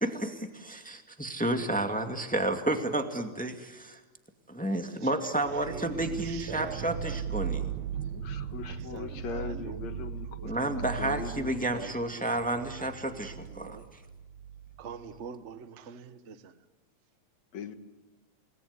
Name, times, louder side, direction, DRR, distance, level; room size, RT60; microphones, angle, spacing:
voice 1, 0.0-4.0 4.5-7.7 10.4-13.8, right 1 dB, 5° left, 1.5 m, -31 dB
voice 2, 5.0-5.3 5.6-7.4 8.6-9.9 10.3-10.5 11.7-11.9 12.6-13.8 14.8-16.6, right 6 dB, 50° right, 0.8 m, -45 dB
sound 1, 5.4-15.3, right 8 dB, 70° right, 2.3 m, -38 dB
voice 3, 8.1-11.9 17.5-17.8, left 7 dB, 70° left, 2.7 m, -40 dB
29.5 x 20.0 x 9.7 m
omnidirectional pair, 3.3 m